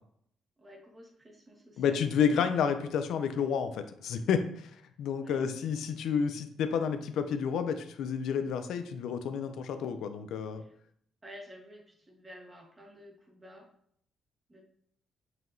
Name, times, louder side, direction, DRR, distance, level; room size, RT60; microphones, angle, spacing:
voice 1, 0.6-2.0 5.2-5.5 10.6-10.7 11.2-13.7 14.5-14.6, equal, 20° right, 0 dB, 1.2 m, -51 dB
voice 2, 1.8-10.6, left 7 dB, 80° left, 9 dB, 0.4 m, -30 dB
5.6 x 2.8 x 2.6 m, 0.66 s
cardioid pair, 90°, 0 cm